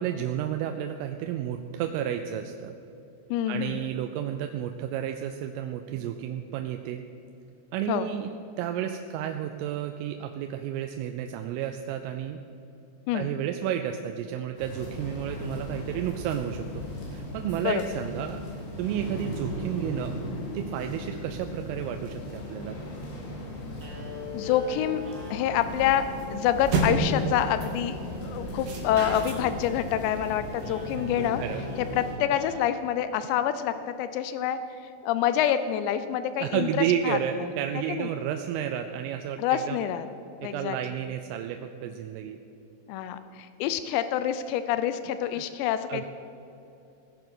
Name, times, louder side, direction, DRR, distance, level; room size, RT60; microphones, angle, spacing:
voice 1, 0.0-2.8 3.5-7.0 7.7-8.3 8.6-12.4 13.1-16.8 17.1-18.4 18.8-20.1 20.5-22.8 31.2-31.6 36.4-39.8 40.4-42.4 45.3-45.4 45.9-46.1, right 10 dB, 85° right, 6 dB, 3.3 m, -31 dB
voice 2, 3.3-3.8 7.9-8.1 13.1-13.3 17.6-17.8 24.3-25.0 25.3-28.0 28.2-31.4 31.8-36.7 37.0-37.5 37.9-38.1 39.4-40.1 40.4-40.8 42.9-46.1, left 10 dB, 90° left, 11 dB, 2.5 m, -27 dB
sound 1, 14.6-32.1, left 1 dB, 65° left, 5.0 m, -37 dB
sound 2, 23.7-34.0, left 2 dB, 30° right, 2.4 m, -45 dB
sound 3, 25.7-30.9, right 3 dB, 50° right, 2.1 m, -32 dB
18.0 x 10.5 x 6.3 m, 2.7 s
omnidirectional pair, 5.8 m